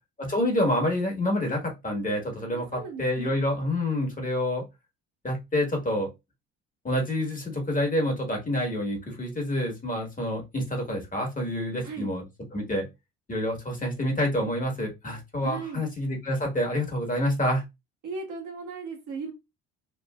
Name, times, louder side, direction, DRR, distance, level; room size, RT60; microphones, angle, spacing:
voice 1, 0.2-4.6 5.2-6.1 6.8-12.2 12.5-12.9 13.3-17.6, left 1 dB, 25° left, 2 dB, 1.3 m, -27 dB
voice 2, 2.5-3.3 11.8-12.1 15.4-15.8 18.0-19.3, right 4 dB, 65° right, 0 dB, 1.5 m, -37 dB
3.2 x 2.5 x 2.2 m, 0.22 s
hypercardioid pair, 65°, 32 cm